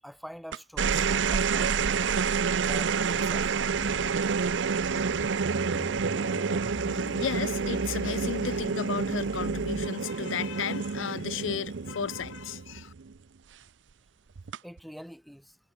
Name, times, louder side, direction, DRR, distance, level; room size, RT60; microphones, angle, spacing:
voice 1, 0.0-2.3 2.6-4.1 14.6-15.6, equal, ahead, 7.0 m, -45 dB
sound 1, 0.5-13.1 14.4-14.8, right 5 dB, 70° right, 0.6 m, -28 dB
sound 2, 3.7-4.4 4.8-9.9, left 1 dB, 35° left, 2.0 m, -41 dB
voice 2, 7.1-12.9, left 7 dB, 85° left, 0.5 m, -34 dB
head